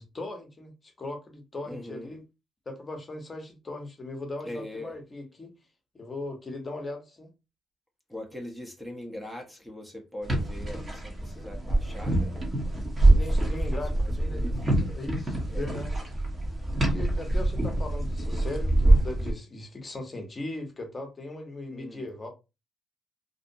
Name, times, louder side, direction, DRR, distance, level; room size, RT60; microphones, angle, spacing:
voice 1, 0.0-2.2 2.7-5.5 5.9-7.3 13.2-14.5 14.9-15.9 16.9-22.3, left 2 dB, 30° left, 0.8 m, -38 dB
voice 2, 1.6-2.1 4.4-4.9 8.1-12.3 13.0-13.6 13.9-15.0 15.5-15.7 21.7-22.0, left 1 dB, 5° right, 0.7 m, -41 dB
sound 1, 10.2-19.3, right 1 dB, 30° right, 0.9 m, -25 dB
2.7 x 2.1 x 2.6 m
cardioid pair, 90°, 0 cm